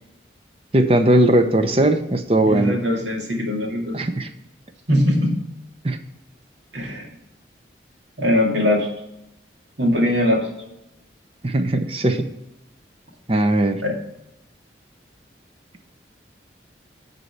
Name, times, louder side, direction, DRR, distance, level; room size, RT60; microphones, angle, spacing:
voice 1, 0.7-2.8 3.9-4.3 5.8-6.0 11.4-12.3 13.3-13.8, right 1 dB, 30° right, 8 dB, 0.7 m, -18 dB
voice 2, 2.5-4.0 4.9-5.4 6.7-7.0 8.2-8.9 9.8-10.5 13.8-13.9, left 1 dB, 80° right, 0 dB, 2.2 m, -21 dB
9.9 x 4.1 x 7.1 m, 0.86 s
head